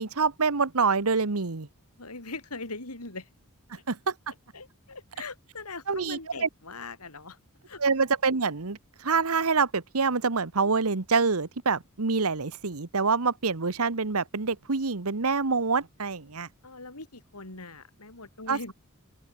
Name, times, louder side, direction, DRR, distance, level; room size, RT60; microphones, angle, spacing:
voice 1, 0.0-1.7 3.9-4.1 5.9-6.5 7.8-16.5 18.5-18.6, right 4 dB, 75° right, 1.2 m, -26 dB
voice 2, 2.0-3.3 4.5-7.4 7.7-7.8 16.6-18.7, left 3 dB, 90° left, 4.4 m, -41 dB
open air
head